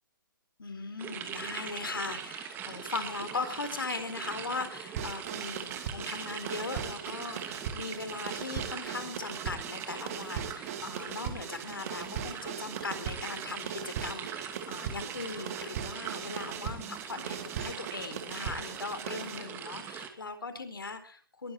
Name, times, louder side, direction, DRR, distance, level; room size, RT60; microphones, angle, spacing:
voice 1, 0.6-21.5, left 4 dB, 80° left, 10 dB, 4.1 m, -39 dB
sound 1, 1.0-20.1, right 8 dB, 20° right, 2.4 m, -41 dB
sound 2, 5.0-19.4, right 7 dB, 40° right, 2.9 m, -39 dB
22.0 x 12.0 x 4.5 m, 0.42 s
figure-of-eight pair, 135°, 12 cm